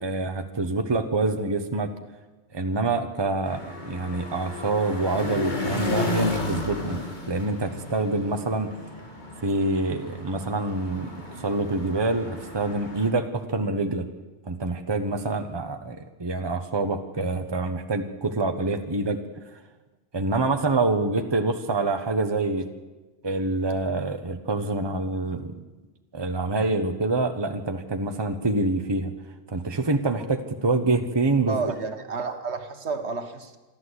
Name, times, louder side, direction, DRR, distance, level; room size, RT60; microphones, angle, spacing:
voice 1, 0.0-1.9 2.5-7.0 7.3-8.7 9.4-14.1 14.5-19.2 20.1-22.7 23.2-25.6 26.1-29.1 29.5-31.6, right 2 dB, 20° right, 7 dB, 1.2 m, -26 dB
sound 1, 3.4-13.1, left 2 dB, 40° left, 2.8 m, -33 dB
voice 2, 31.5-33.6, right 4 dB, 65° right, 7 dB, 1.6 m, -30 dB
27.0 x 12.0 x 8.3 m, 1.2 s
omnidirectional pair, 1.3 m